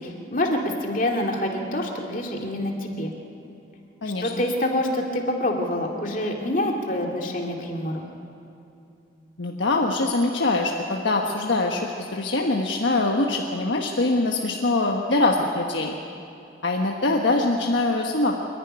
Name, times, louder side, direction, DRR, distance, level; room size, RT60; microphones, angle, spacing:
voice 1, 0.0-3.1 4.2-8.0, left 1 dB, 45° left, 1 dB, 2.4 m, -26 dB
voice 2, 9.4-15.9 16.6-18.4, left 2 dB, 80° left, 0 dB, 1.3 m, -23 dB
27.5 x 11.0 x 10.0 m, 2.7 s
head